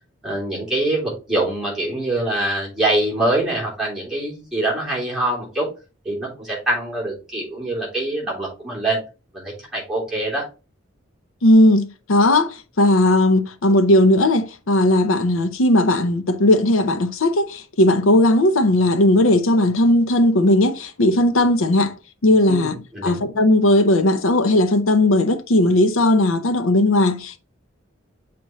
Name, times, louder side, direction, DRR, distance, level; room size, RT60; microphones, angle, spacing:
voice 1, 0.2-5.7 6.0-9.0 9.3-10.4 22.5-23.2, right 1 dB, ahead, 3.2 m, -24 dB
voice 2, 11.4-22.0 22.2-27.4, left 1 dB, 80° left, 0.7 m, -17 dB
7.4 x 4.3 x 3.1 m
head